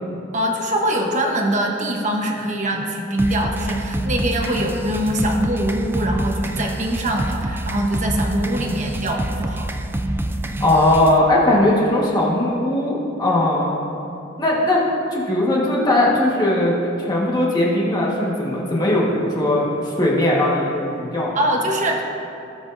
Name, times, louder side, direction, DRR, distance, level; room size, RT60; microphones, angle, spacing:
voice 1, 0.3-9.7 21.3-22.0, right 1 dB, 40° right, 1 dB, 1.0 m, -23 dB
sound 1, 3.2-11.2, right 1 dB, 10° right, 0.4 m, -26 dB
voice 2, 10.6-13.7 14.4-14.8 15.1-21.4, left 1 dB, 20° left, -5 dB, 1.5 m, -19 dB
18.5 x 6.2 x 2.7 m, 2.8 s
head